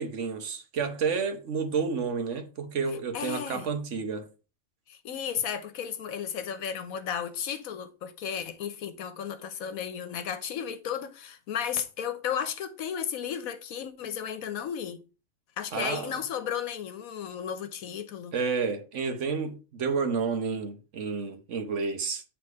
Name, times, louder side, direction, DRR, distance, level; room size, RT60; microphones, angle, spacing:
voice 1, 0.0-4.3 15.7-16.2 18.3-22.2, right 5 dB, 60° right, 1.2 m, -30 dB
voice 2, 3.1-3.7 4.9-15.0 15.6-18.3, left 8 dB, 80° left, 1.3 m, -34 dB
8.1 x 3.4 x 4.6 m
omnidirectional pair, 1.5 m